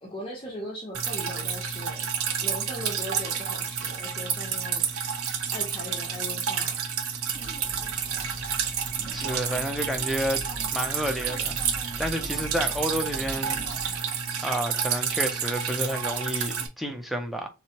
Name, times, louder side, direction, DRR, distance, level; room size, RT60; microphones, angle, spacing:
voice 1, 0.0-2.1 2.4-4.9 5.5-6.8, left 1 dB, 25° left, 0.7 m, -39 dB
Drip, 0.9-16.7, right 7 dB, 85° right, 0.6 m, -30 dB
sound 1, 7.3-14.0, equal, 55° right, 1.7 m, -41 dB
voice 2, 9.1-10.4 10.7-11.6 12.0-14.0 14.4-17.5, equal, ahead, 0.4 m, -30 dB
3.3 x 3.0 x 2.8 m
head